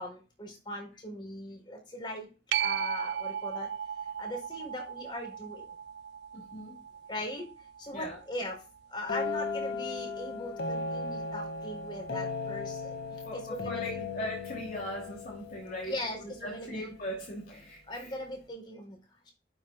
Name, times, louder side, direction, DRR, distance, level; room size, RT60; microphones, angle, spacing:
voice 1, 0.0-2.3 2.5-3.7 4.2-5.6 7.1-7.4 7.8-8.6 8.9-13.0 13.3-14.1 15.8-16.9 17.9-19.0, left 1 dB, 25° left, 1 dB, 4.2 m, -39 dB
sound 1, 2.5-9.7 15.2-15.3, right 9 dB, 70° right, 0.3 m, -37 dB
voice 2, 6.3-6.8 7.9-8.2 13.2-18.1, equal, 50° left, -2 dB, 3.0 m, -40 dB
sound 2, 9.1-16.8, left 4 dB, 70° left, 2.2 m, -37 dB
12.5 x 6.2 x 2.4 m, 0.31 s
head